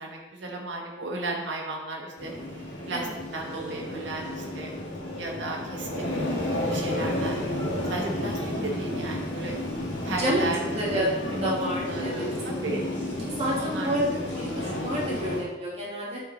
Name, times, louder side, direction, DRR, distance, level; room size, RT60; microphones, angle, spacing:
voice 1, 0.0-2.3 2.8-3.1 3.3-4.7 5.2-7.4 7.9-9.5 10.0-10.6 10.9-11.0 11.3-11.5 11.9-12.9 13.5-13.9, right 2 dB, 85° right, -1 dB, 1.2 m, -34 dB
sound 1, 2.2-15.4, left 1 dB, 75° left, 2.1 m, -32 dB
voice 2, 6.8-7.1 10.2-10.5 10.7-11.1 11.4-12.3 12.5-12.6 13.3-14.1 14.3-16.2, equal, 35° right, -5 dB, 2.0 m, -29 dB
8.6 x 4.6 x 4.0 m, 1.2 s
head